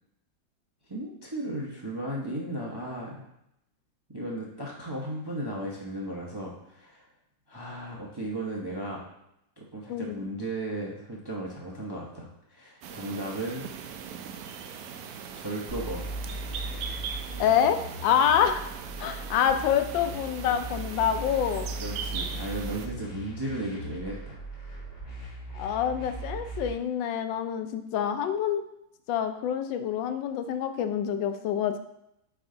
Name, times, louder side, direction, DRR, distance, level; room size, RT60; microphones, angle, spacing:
voice 1, 0.9-3.2 4.1-7.1 7.5-9.0 9.6-13.7 15.3-16.1 21.8-24.4, right 1 dB, 25° right, -3 dB, 0.6 m, -35 dB
voice 2, 9.9-10.2 17.4-18.7 19.0-21.7 25.5-28.6 29.1-31.8, left 8 dB, 85° left, 8 dB, 1.3 m, -26 dB
sound 1, 12.8-22.9, right 7 dB, 70° right, 0.9 m, -40 dB
sound 2, 15.7-26.7, right 1 dB, 40° left, 2.9 m, -38 dB
9.1 x 3.5 x 3.8 m, 0.81 s
omnidirectional pair, 2.0 m